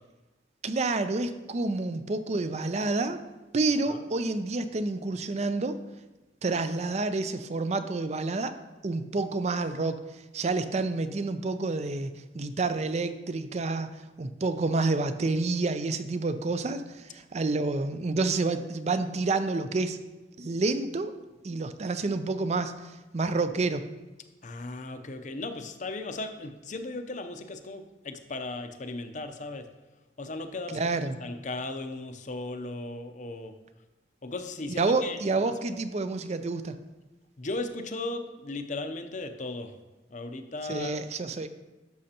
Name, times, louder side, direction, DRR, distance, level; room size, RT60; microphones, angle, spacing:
voice 1, 0.6-3.2 3.5-5.8 6.4-8.5 8.8-10.0 10.3-13.9 14.2-20.0 20.4-21.1 21.4-23.8 30.7-31.2 34.8-36.7 40.7-41.5, right 3 dB, 35° right, 11 dB, 0.4 m, -29 dB
voice 2, 24.4-29.7 30.2-33.5 34.2-35.2 37.4-39.7 40.1-41.0, left 2 dB, 40° left, 7 dB, 0.6 m, -36 dB
11.5 x 6.4 x 2.9 m, 1.1 s
head